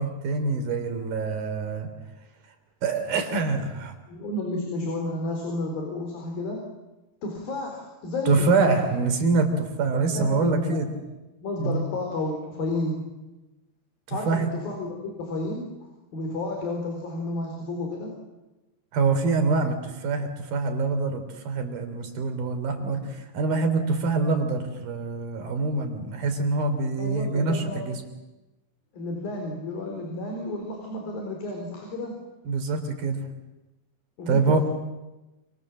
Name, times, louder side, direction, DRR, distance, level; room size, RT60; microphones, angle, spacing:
voice 1, 0.0-1.9 2.8-3.9 8.3-10.9 11.6-11.8 14.1-14.5 18.9-28.0 32.5-33.3 34.3-34.6, right 3 dB, 70° right, 6 dB, 5.3 m, -25 dB
voice 2, 4.1-6.6 7.2-8.9 10.1-11.0 11.4-13.0 14.1-15.7 16.1-18.1 27.0-27.9 28.9-32.1 34.2-34.6, left 2 dB, 70° left, 2 dB, 6.0 m, -31 dB
28.5 x 27.0 x 7.5 m, 1.1 s
omnidirectional pair, 4.4 m